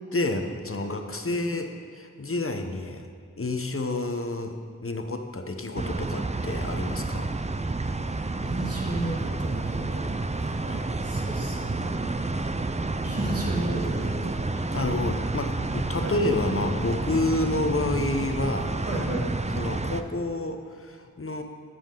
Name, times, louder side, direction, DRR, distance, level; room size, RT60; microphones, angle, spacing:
voice 1, 0.1-1.7 1.9-3.1 3.4-7.3 10.7-10.9 14.6-18.8 19.5-21.4, left 2 dB, 50° left, 5 dB, 0.9 m, -29 dB
sound 1, 5.8-20.0, right 3 dB, 25° right, 0.4 m, -30 dB
voice 2, 8.4-10.6 11.0-12.1 13.0-14.8 16.0-16.1 18.9-19.3, right 1 dB, 55° right, -5 dB, 2.4 m, -33 dB
12.0 x 6.9 x 3.8 m, 2.1 s
wide cardioid pair, 45°, 29 cm